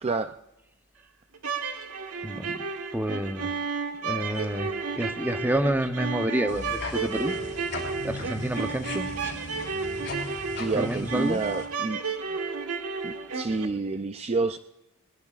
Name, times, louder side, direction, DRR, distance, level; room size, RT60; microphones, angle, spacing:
voice 1, 0.0-0.3 10.6-12.0 13.0-14.6, right 3 dB, 30° right, 9 dB, 0.4 m, -29 dB
sound 1, 1.3-13.7, right 4 dB, 80° right, 1.5 m, -32 dB
voice 2, 2.2-2.6 2.9-3.6 4.0-7.4 8.0-9.1 10.8-11.4, right 1 dB, 10° right, 7 dB, 0.8 m, -29 dB
sound 2, 6.5-11.7, left 2 dB, 50° left, 5.0 m, -38 dB
22.0 x 21.0 x 2.4 m, 0.92 s
head